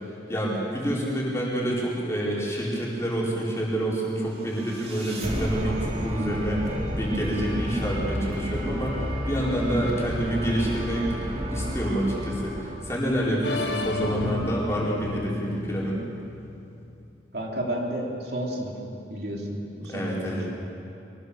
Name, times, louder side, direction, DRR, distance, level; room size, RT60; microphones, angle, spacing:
voice 1, 0.3-16.0 19.9-20.5, right 1 dB, 15° left, -5 dB, 4.7 m, -28 dB
sound 1, 4.2-13.4, equal, 35° right, 2.9 m, -31 dB
sound 2, 13.4-17.2, left 2 dB, 80° left, 1.6 m, -33 dB
voice 2, 17.3-20.5, right 1 dB, 65° right, -1 dB, 3.1 m, -32 dB
23.5 x 19.0 x 7.0 m, 2.7 s
head